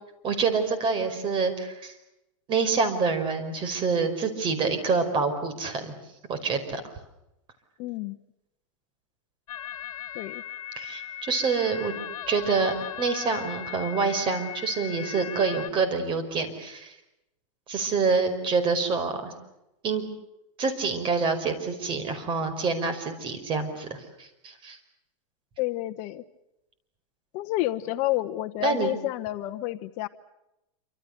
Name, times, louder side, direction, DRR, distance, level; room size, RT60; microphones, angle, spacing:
voice 1, 0.2-1.9 2.5-5.9 6.3-6.8 10.8-11.9 12.3-16.9 17.7-19.3 19.8-20.0 20.6-24.8 28.6-28.9, right 4 dB, 25° right, 8 dB, 5.1 m, -27 dB
voice 2, 7.8-8.2 10.1-10.4 25.6-26.2 27.3-30.1, left 16 dB, 40° left, 9 dB, 1.1 m, -29 dB
sound 1, 9.5-15.7, left 10 dB, 80° left, 1.7 m, -38 dB
28.0 x 26.0 x 6.7 m, 0.89 s
supercardioid pair, 145°, 18 cm